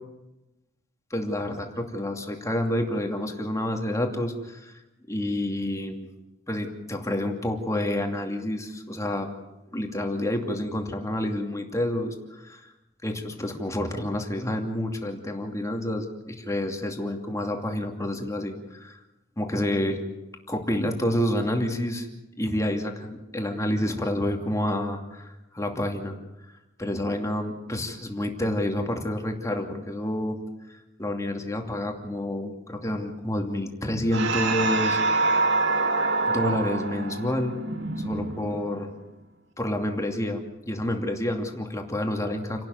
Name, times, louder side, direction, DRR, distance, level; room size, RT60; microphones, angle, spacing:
voice 1, 1.1-4.8 5.1-6.1 6.5-9.3 9.7-12.7 13.0-19.0 19.4-20.0 20.5-22.1 22.4-26.2 26.8-30.4 30.7-35.0 36.3-37.6 38.0-38.9 39.6-42.7, left 1 dB, 15° left, 3 dB, 2.6 m, -29 dB
sound 1, 34.1-38.9, right 3 dB, 60° right, 2.0 m, -26 dB
29.5 x 12.0 x 9.5 m, 0.99 s
head